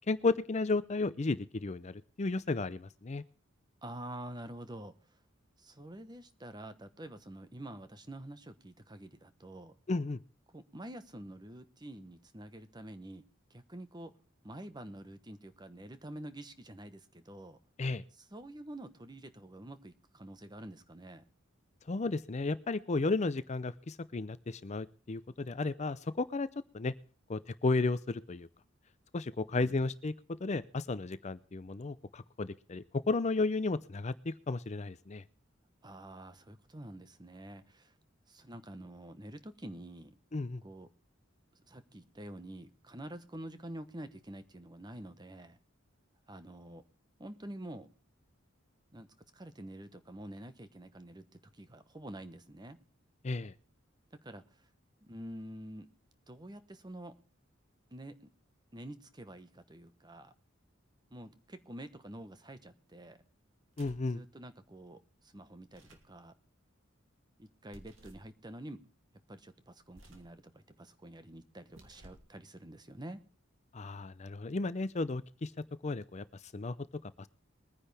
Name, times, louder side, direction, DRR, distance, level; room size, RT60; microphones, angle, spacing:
voice 1, 0.1-3.2 9.9-10.2 17.8-18.0 21.9-26.5 26.7-26.9 27.3-28.5 29.1-30.1 30.4-35.2 40.3-40.6 53.2-53.5 63.8-64.2 73.7-75.5 75.8-76.2 76.5-76.8 77.0-77.3, left 3 dB, 35° left, 15 dB, 0.5 m, -33 dB
voice 2, 3.8-5.2 5.6-9.7 10.5-13.2 13.5-14.1 14.4-17.6 18.2-21.2 29.5-29.8 35.8-37.9 38.3-40.1 40.6-40.9 41.6-45.6 46.3-46.8 47.2-47.9 48.9-49.1 49.3-51.2 51.5-52.8 54.1-54.4 55.0-55.9 56.3-57.2 57.9-58.3 58.7-60.3 61.1-63.2 64.1-66.3 67.4-68.8 69.3-73.2, right 1 dB, 20° right, 11 dB, 1.1 m, -47 dB
sound 1, 63.7-64.2 65.6-66.1 67.7-68.3 69.8-70.4 71.6-72.3, right 1 dB, 70° right, 2.6 m, -57 dB
22.0 x 10.0 x 3.4 m, 0.39 s
head